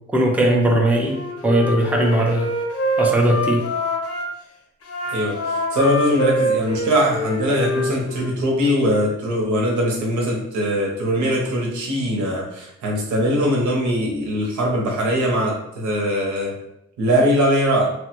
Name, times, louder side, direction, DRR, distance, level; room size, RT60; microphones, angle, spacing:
voice 1, 0.1-2.5 3.0-3.6, right 1 dB, 5° right, 0 dB, 0.5 m, -19 dB
Wind instrument woodwind instrument, 1.0-4.3 4.8-8.4, equal, 55° left, 0.7 m, -25 dB
voice 2, 5.0-16.5 17.0-17.9, equal, 85° right, -1 dB, 0.9 m, -21 dB
3.1 x 2.2 x 3.0 m, 0.82 s
cardioid pair, 100°, 29 cm